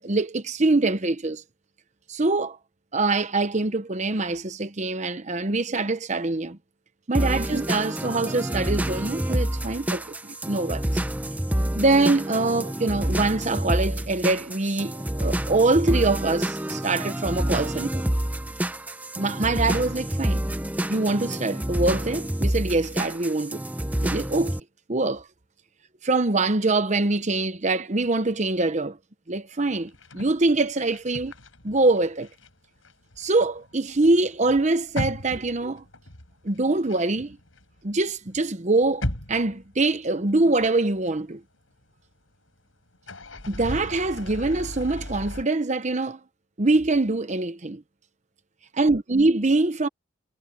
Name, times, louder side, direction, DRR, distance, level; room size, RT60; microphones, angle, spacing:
voice 1, 0.0-1.4 2.1-2.6 2.9-6.6 7.1-10.8 11.8-18.0 19.2-20.4 20.9-23.6 24.0-24.5 24.9-25.2 26.0-29.0 29.3-31.3 31.6-32.3 33.2-35.8 36.4-37.4 37.8-41.4 43.5-46.2 46.6-47.8 48.8-49.9, right 2 dB, 35° right, 0.9 m, -24 dB
sound 1, 7.1-24.6, right 1 dB, 10° right, 0.6 m, -28 dB
sound 2, 29.8-32.5 32.8-38.0 38.3-40.3 40.7-40.8 42.9-45.4, left 1 dB, 80° left, 5.3 m, -37 dB
head